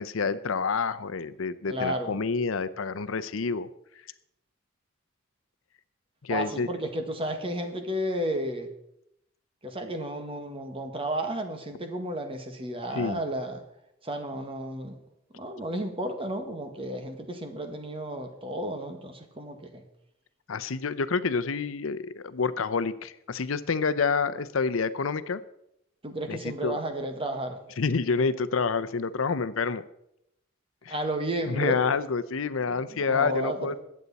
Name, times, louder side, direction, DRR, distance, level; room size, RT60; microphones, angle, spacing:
voice 1, 0.0-3.7 6.2-6.7 12.9-13.2 20.5-25.4 26.3-26.8 27.8-29.8 30.8-31.0 31.5-33.8, left 5 dB, 80° left, 14 dB, 0.7 m, -28 dB
voice 2, 1.7-2.2 6.3-8.7 9.6-13.6 14.0-15.0 15.3-19.8 26.0-27.6 30.9-31.8 32.9-33.7, right 1 dB, 25° right, 6 dB, 1.6 m, -32 dB
21.0 x 8.3 x 4.1 m, 0.80 s
head